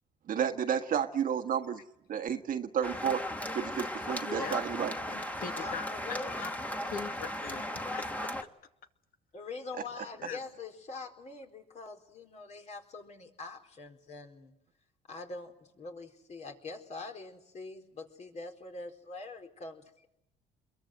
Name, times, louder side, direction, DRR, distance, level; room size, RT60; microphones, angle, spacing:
voice 1, 0.3-1.7 2.1-3.2 3.5-4.9, right 8 dB, 55° right, 6 dB, 1.5 m, -31 dB
sound 1, 2.8-8.4, left 1 dB, 10° left, 2.1 m, -36 dB
voice 2, 4.3-4.6 5.1-6.5 6.8-8.3 10.2-10.4, left 6 dB, 60° left, 7 dB, 2.3 m, -41 dB
voice 3, 5.5-6.5 9.3-14.5 15.1-20.1, left 3 dB, 40° left, 4 dB, 4.2 m, -44 dB
27.5 x 22.5 x 7.9 m, 0.83 s
cardioid pair, 110°, 17 cm